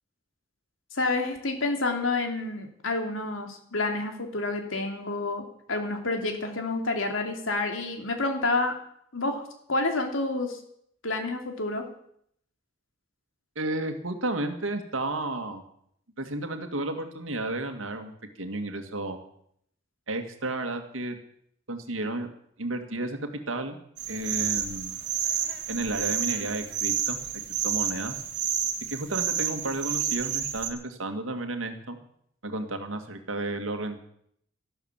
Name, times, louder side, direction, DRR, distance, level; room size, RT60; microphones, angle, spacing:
voice 1, 0.9-8.7 9.1-9.4 9.7-10.6 11.0-11.9, left 2 dB, 85° left, 4 dB, 2.8 m, -29 dB
voice 2, 13.6-15.6 16.2-18.1 18.4-19.2 20.1-21.2 21.7-22.3 22.6-23.2 23.5-23.8 24.1-25.0 25.7-27.2 27.6-28.2 28.9-32.0 32.4-34.0, right 2 dB, 85° right, 6 dB, 2.1 m, -32 dB
sound 1, 24.0-30.7, right 9 dB, 60° right, 1.6 m, -30 dB
13.0 x 12.0 x 7.4 m, 0.68 s
head